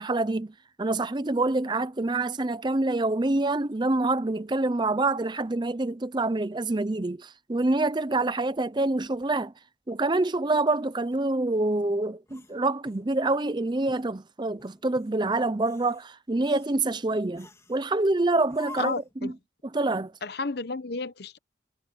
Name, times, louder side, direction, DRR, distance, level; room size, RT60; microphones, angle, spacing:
voice 1, 0.0-9.5 9.9-18.9 19.2-19.3 19.7-20.1, right 2 dB, 25° right, 0.6 m, -26 dB
sound 1, 12.3-13.5 13.9-14.1 14.6-15.1 15.6-16.1 16.4-16.8 17.4-17.8 18.5-19.2, left 3 dB, 15° left, 3.7 m, -49 dB
voice 2, 18.8-19.3 20.2-21.4, left 3 dB, 60° left, 0.9 m, -32 dB
head